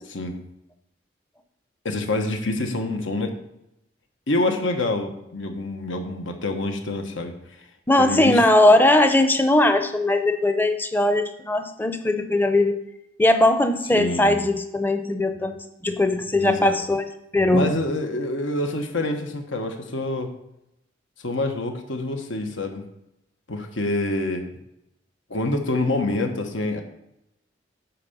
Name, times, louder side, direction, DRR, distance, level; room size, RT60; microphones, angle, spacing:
voice 1, 0.1-0.4 1.8-3.3 4.3-7.4 8.0-8.4 13.9-14.4 16.4-16.7 17.5-20.3 21.2-22.8 23.5-24.5 25.3-26.8, left 2 dB, 80° left, 5 dB, 1.3 m, -26 dB
voice 2, 7.9-12.8 13.2-15.6 15.8-17.0 17.3-17.7, left 1 dB, 10° left, 8 dB, 0.6 m, -19 dB
9.3 x 4.2 x 6.9 m, 0.83 s
head